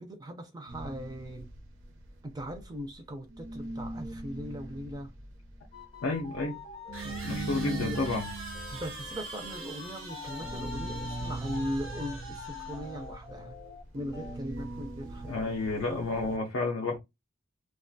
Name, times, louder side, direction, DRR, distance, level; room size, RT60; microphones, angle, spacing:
voice 1, 0.0-1.5 2.3-5.1 7.0-8.0 8.7-13.5 13.9-15.6, equal, 20° right, 0.4 m, -39 dB
sound 1, 0.7-3.0 3.3-16.4, right 3 dB, 70° right, 0.6 m, -41 dB
sound 2, 5.3-5.4 6.9-13.0, right 3 dB, 90° right, 1.0 m, -45 dB
sound 3, 5.7-13.8 14.1-14.3, left 5 dB, 25° left, 0.6 m, -45 dB
voice 2, 6.0-6.6 7.2-8.3 15.3-17.0, left 3 dB, 70° left, 0.4 m, -31 dB
2.3 x 2.2 x 2.5 m
head